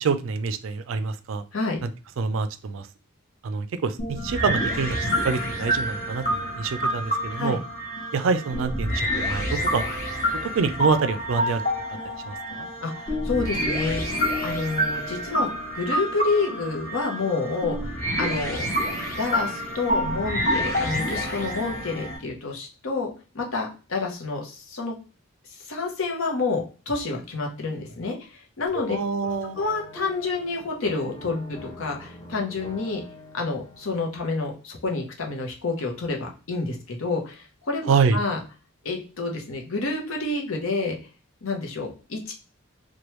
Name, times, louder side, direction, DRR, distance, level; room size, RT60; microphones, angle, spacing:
voice 1, 0.0-1.4 1.8-1.9 2.2-2.9 3.4-7.6 8.1-9.8 10.4-11.6 12.3-12.7 28.9-29.6 37.9-38.2, right 5 dB, 70° right, 11 dB, 0.4 m, -26 dB
sound 1, 4.0-22.2, equal, 40° left, 1.1 m, -28 dB
voice 2, 12.8-14.0 14.4-15.5 15.7-17.8 18.2-18.7 19.2-25.0 25.7-29.0 29.6-33.0 33.3-38.4 38.8-41.0 41.4-42.3, left 3 dB, 75° left, 1 dB, 0.8 m, -29 dB
sound 2, 28.7-34.5, left 1 dB, 25° left, 0.7 m, -42 dB
3.0 x 2.2 x 3.0 m, 0.35 s
head